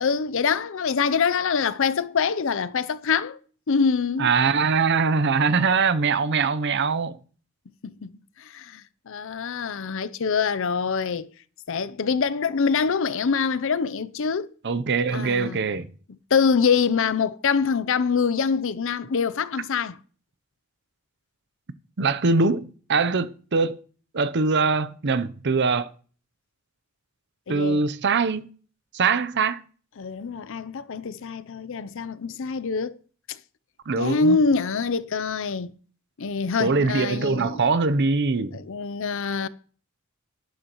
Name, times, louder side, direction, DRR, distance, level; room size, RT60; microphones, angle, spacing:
voice 1, 0.0-3.4 3.7-4.3 7.8-8.1 8.4-11.3 11.7-14.5 15.1-15.6 16.3-20.0 27.5-27.9 30.0-32.9 33.3-33.4 34.0-35.8 36.2-37.7 38.5-39.5, left 5 dB, 65° left, 0.6 m, -25 dB
voice 2, 4.2-7.2 14.6-15.9 22.0-23.8 24.1-25.9 27.5-28.5 28.9-29.6 33.9-34.4 36.6-38.6, right 4 dB, 55° right, 0.7 m, -22 dB
11.5 x 10.5 x 3.0 m
head